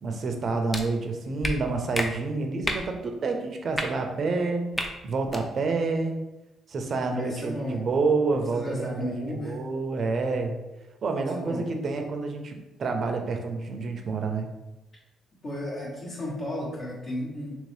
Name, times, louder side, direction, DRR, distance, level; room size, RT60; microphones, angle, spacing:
voice 1, 0.0-4.7 5.0-6.2 6.7-10.6 11.0-14.5, right 3 dB, 50° right, 4 dB, 0.5 m, -28 dB
sound 1, 0.7-0.8 1.4-1.5 1.9-2.1 2.6-2.8 3.7-3.8 4.7-4.9 5.2-5.4, left 1 dB, 15° left, 0.5 m, -29 dB
voice 2, 7.1-7.8 8.5-9.7 11.3-11.7 15.4-17.5, left 1 dB, 55° left, -7 dB, 1.1 m, -33 dB
2.9 x 2.7 x 3.3 m, 1.0 s
cardioid pair, 90°, 0 cm